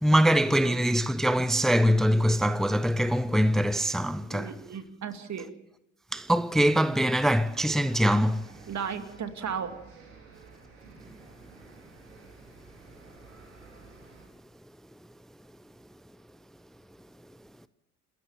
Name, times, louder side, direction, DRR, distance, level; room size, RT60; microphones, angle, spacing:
voice 1, 0.0-4.6 6.1-8.5, equal, ahead, 0.8 m, -23 dB
voice 2, 4.3-5.5 8.7-9.7, right 7 dB, 50° right, 2.4 m, -35 dB
sound 1, 7.5-14.3, right 4 dB, 90° right, 4.0 m, -52 dB
28.0 x 13.5 x 7.3 m
hypercardioid pair, 50°, 37 cm